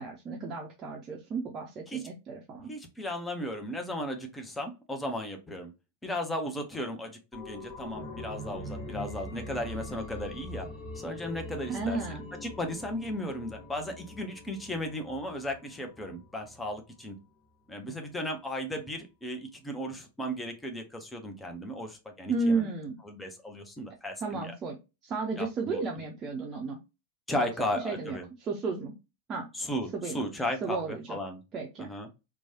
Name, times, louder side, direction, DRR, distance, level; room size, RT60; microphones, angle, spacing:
voice 1, 0.0-2.7 11.7-12.3 22.3-23.0 24.2-24.8 25.0-26.8 27.4-28.9 29.3-29.5 29.9-30.2 30.6-31.2 31.5-31.9, right 3 dB, 25° right, -1 dB, 0.6 m, -33 dB
voice 2, 2.6-5.7 6.0-10.7 10.9-12.0 12.3-17.2 17.7-22.7 23.0-24.5 25.4-25.9 27.3-28.3 29.5-31.4 31.8-32.1, left 1 dB, 10° left, 3 dB, 0.7 m, -35 dB
sound 1, 7.3-16.7 17.0-17.1, left 1 dB, 35° left, 1.1 m, -43 dB
3.0 x 2.2 x 2.8 m, 0.26 s
figure-of-eight pair, 90°, 0 cm